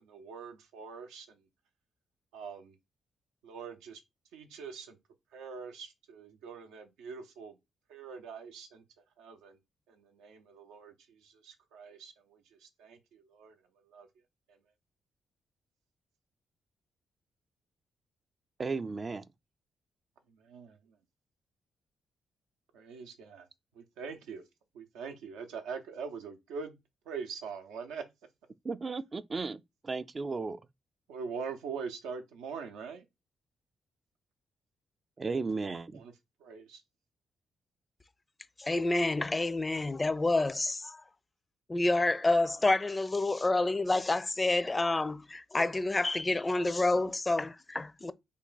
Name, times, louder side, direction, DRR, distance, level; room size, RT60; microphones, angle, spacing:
voice 1, 0.0-1.4 2.3-2.8 3.4-4.0 4.3-5.0 5.3-7.6 7.9-8.8 9.2-9.6 9.9-13.5 13.9-14.1 20.4-20.8 22.7-23.4 24.0-24.4 24.7-26.8 27.1-28.0 31.1-33.0 35.9-36.1 36.4-36.8, right 5 dB, 90° right, 0.6 m, -43 dB
voice 2, 18.6-19.2 28.6-30.6 35.2-36.0, right 4 dB, 40° right, 0.3 m, -35 dB
voice 3, 38.6-41.0 41.7-48.1, left 2 dB, 25° left, 0.4 m, -28 dB
3.5 x 2.3 x 3.9 m
supercardioid pair, 55°, 0 cm